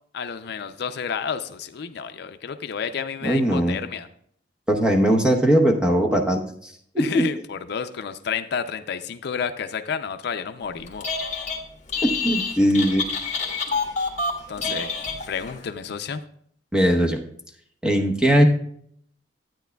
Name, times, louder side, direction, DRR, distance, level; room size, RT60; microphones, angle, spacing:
voice 1, 0.1-4.1 7.0-11.1 14.5-14.9 15.3-16.2, left 6 dB, 60° left, 9 dB, 0.4 m, -30 dB
voice 2, 3.2-3.8 4.7-7.3 12.0-13.0 16.7-17.2 17.8-18.5, equal, 5° right, 2 dB, 0.9 m, -20 dB
Telephone, 10.9-11.6 11.9-15.6, left 4 dB, 40° left, 1.4 m, -27 dB
12.5 x 9.0 x 2.3 m, 0.65 s
head